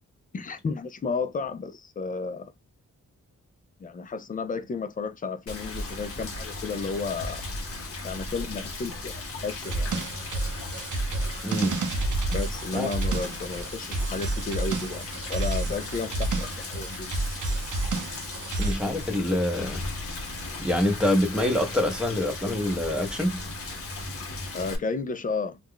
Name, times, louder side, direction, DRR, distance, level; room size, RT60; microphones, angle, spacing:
voice 1, 0.3-2.5 3.8-7.4 8.0-9.9 12.3-17.2 24.5-25.6, left 4 dB, 30° left, 0.3 m, -33 dB
Rain, 5.5-24.8, left 2 dB, 50° left, 0.7 m, -36 dB
sound 1, 9.6-18.7, right 2 dB, 90° right, 0.6 m, -30 dB
voice 2, 11.4-11.8 12.7-12.9 18.6-19.8 20.6-23.4, left 1 dB, 5° right, 0.7 m, -25 dB
2.4 x 2.2 x 3.5 m
wide cardioid pair, 135°, 30 cm